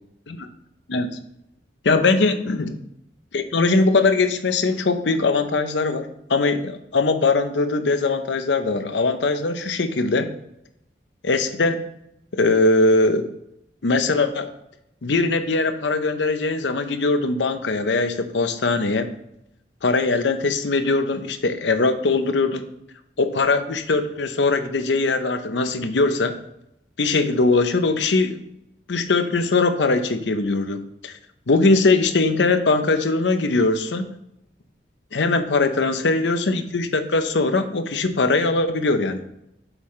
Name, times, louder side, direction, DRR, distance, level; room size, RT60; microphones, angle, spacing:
voice 1, 0.9-1.2 1.8-2.8 3.3-10.3 11.2-11.8 12.3-13.3 13.8-14.5 15.0-19.1 19.8-22.7 23.2-26.4 27.0-28.4 28.9-31.1 31.5-34.1 35.1-39.2, left 3 dB, 85° left, 8 dB, 0.7 m, -21 dB
8.0 x 5.7 x 3.2 m, 0.80 s
head